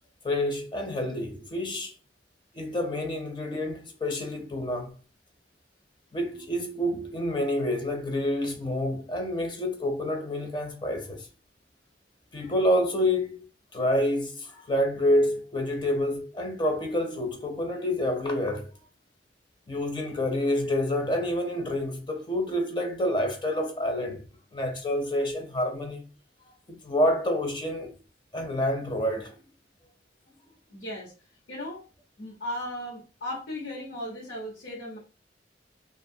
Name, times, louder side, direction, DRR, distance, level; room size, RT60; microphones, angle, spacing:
voice 1, 0.2-1.9 2.5-4.9 6.1-11.3 12.3-13.4 13.7-18.7 19.7-24.2 24.5-26.0 26.7-27.9 28.3-29.3, left 1 dB, 25° left, 0.4 m, -28 dB
voice 2, 30.7-31.1 31.5-31.8 32.2-35.0, left 1 dB, 90° left, 1.0 m, -36 dB
2.7 x 2.3 x 2.6 m
head